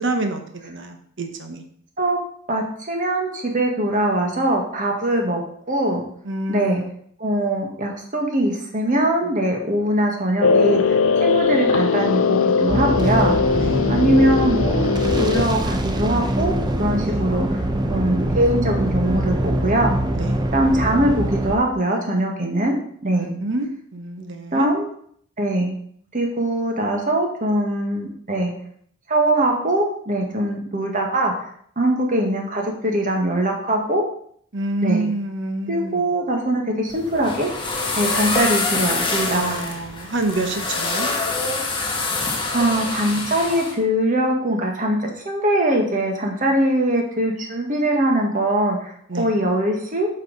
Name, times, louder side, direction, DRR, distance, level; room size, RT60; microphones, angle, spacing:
voice 1, 0.0-1.6 6.2-6.9 13.5-14.0 17.0-17.3 18.2-18.6 20.1-20.4 23.1-24.7 34.5-36.1 39.3-41.1 49.1-49.3, right 2 dB, 60° right, 5 dB, 1.1 m, -28 dB
voice 2, 2.5-5.4 5.7-6.0 6.5-6.8 7.2-13.4 13.9-16.5 16.8-17.6 17.9-20.0 20.5-22.7 23.0-23.3 24.5-24.8 25.4-25.7 26.1-28.5 29.1-31.5 31.8-34.0 34.8-35.1 35.7-37.5 38.0-39.4 42.1-42.2 42.5-50.1, right 1 dB, 40° right, 2 dB, 1.6 m, -22 dB
sound 1, 10.4-15.4, left 5 dB, 65° left, 0.5 m, -20 dB
sound 2, 12.7-21.6, right 1 dB, 20° right, 0.7 m, -23 dB
sound 3, 36.9-43.7, left 3 dB, 25° left, 1.2 m, -25 dB
8.4 x 5.7 x 4.1 m, 0.63 s
head